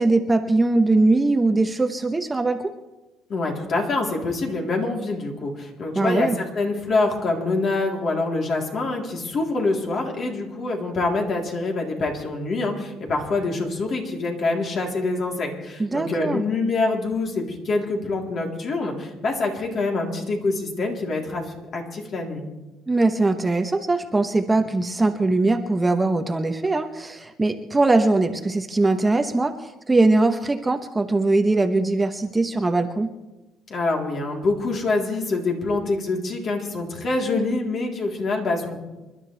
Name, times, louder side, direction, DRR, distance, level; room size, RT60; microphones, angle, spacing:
voice 1, 0.0-2.7 5.9-6.4 15.8-16.4 22.9-33.1, right 2 dB, 15° right, 6 dB, 1.0 m, -21 dB
voice 2, 3.3-22.4 33.7-38.8, left 3 dB, 50° left, 0 dB, 3.5 m, -25 dB
27.5 x 12.0 x 3.4 m, 1.1 s
cardioid pair, 105°, 0 cm